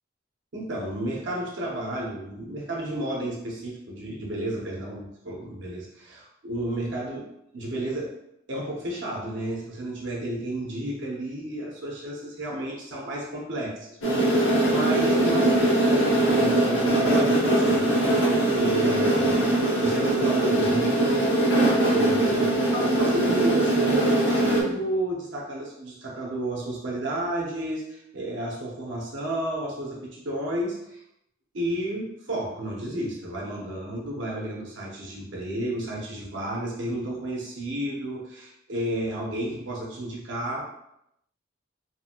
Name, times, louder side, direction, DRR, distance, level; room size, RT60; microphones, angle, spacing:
voice 1, 0.5-7.2 7.5-8.1 8.5-17.8 18.6-21.5 21.9-31.0 31.5-40.6, right 1 dB, 65° right, -2 dB, 0.7 m, -32 dB
sound 1, 14.0-24.6, right 1 dB, 70° left, 0.9 m, -21 dB
2.8 x 2.5 x 2.7 m, 0.79 s
head